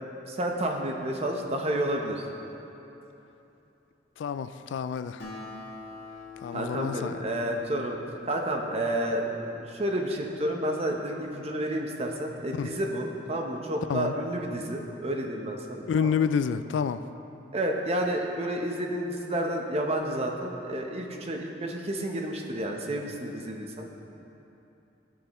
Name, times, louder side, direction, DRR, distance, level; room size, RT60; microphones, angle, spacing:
voice 1, 0.3-2.2 6.5-8.0 8.3-16.1 17.5-23.9, right 1 dB, 35° right, 2 dB, 0.8 m, -30 dB
voice 2, 4.2-5.2 6.4-7.2 12.6-12.7 13.9-14.1 15.9-17.0, left 6 dB, 80° left, 12 dB, 0.3 m, -28 dB
Acoustic guitar, 5.2-8.9, left 3 dB, 60° left, 1.8 m, -44 dB
15.0 x 6.5 x 3.0 m, 3.0 s
head